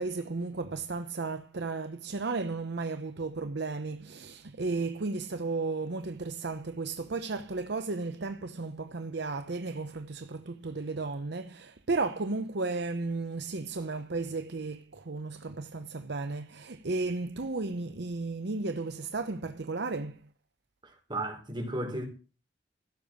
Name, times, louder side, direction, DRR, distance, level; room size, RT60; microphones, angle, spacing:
voice 1, 0.0-20.2, right 3 dB, 65° right, 0.8 m, -34 dB
voice 2, 20.8-22.0, right 1 dB, 25° right, 5.0 m, -34 dB
16.0 x 7.1 x 6.5 m
head